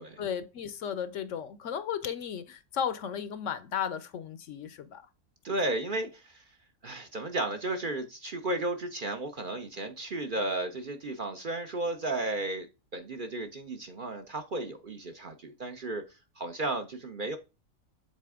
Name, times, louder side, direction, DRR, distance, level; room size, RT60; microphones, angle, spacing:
voice 1, 0.2-5.0, left 8 dB, 70° left, 0.9 m, -34 dB
voice 2, 5.4-6.4 6.8-12.7 12.9-16.0 16.4-17.4, right 2 dB, 45° right, 0.7 m, -34 dB
7.5 x 4.0 x 3.5 m
omnidirectional pair, 1.5 m